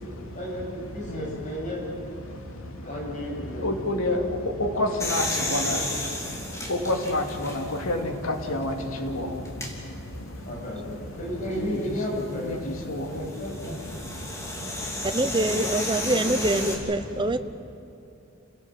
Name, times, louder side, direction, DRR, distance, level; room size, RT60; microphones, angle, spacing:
voice 1, 0.0-1.8 2.8-4.3 5.3-6.0 10.5-12.5 13.1-13.8 16.1-16.8, equal, 40° left, -3 dB, 7.7 m, -34 dB
voice 2, 3.6-4.2 4.6-5.8 6.7-8.7 9.0-9.3 11.6-11.8 12.5-12.6 12.9-13.1, left 1 dB, 85° left, 3 dB, 2.5 m, -27 dB
sound 1, 5.0-7.9 8.5-8.6 9.4-9.7 11.9-16.7, left 1 dB, 15° left, 3.1 m, -33 dB
voice 3, 15.0-17.4, right 2 dB, 25° right, 10 dB, 0.9 m, -25 dB
29.0 x 17.0 x 7.6 m, 2.7 s
head